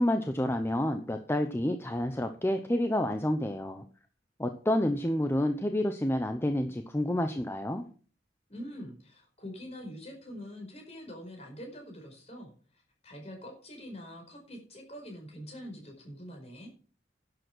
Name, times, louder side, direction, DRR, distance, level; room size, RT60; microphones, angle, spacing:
voice 1, 0.0-3.8 4.4-7.9, left 1 dB, 15° left, 7 dB, 0.8 m, -29 dB
voice 2, 8.5-16.7, equal, 35° left, 2 dB, 5.0 m, -45 dB
11.0 x 7.9 x 6.2 m, 0.40 s
head